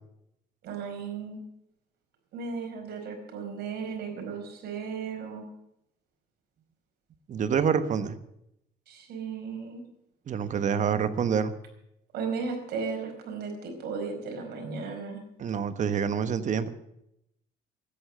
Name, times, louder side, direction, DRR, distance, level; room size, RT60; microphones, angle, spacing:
voice 1, 0.6-1.4 2.3-5.4 8.9-9.8 12.1-15.2, right 5 dB, 70° right, 3 dB, 4.9 m, -35 dB
voice 2, 7.3-8.2 10.3-11.5 15.4-16.7, right 7 dB, 45° right, 11 dB, 1.3 m, -27 dB
13.5 x 10.5 x 8.2 m, 0.79 s
cardioid pair, 110°, 17 cm